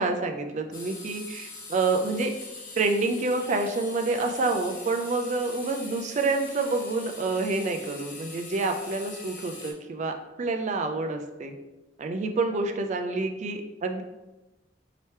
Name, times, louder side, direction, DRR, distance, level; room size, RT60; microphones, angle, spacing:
voice 1, 0.0-2.4 2.7-11.5 12.0-14.0, right 3 dB, 40° right, 5 dB, 0.4 m, -28 dB
sound 1, 0.7-9.7, left 3 dB, 45° left, 0.8 m, -43 dB
4.4 x 2.9 x 3.2 m, 1.0 s
head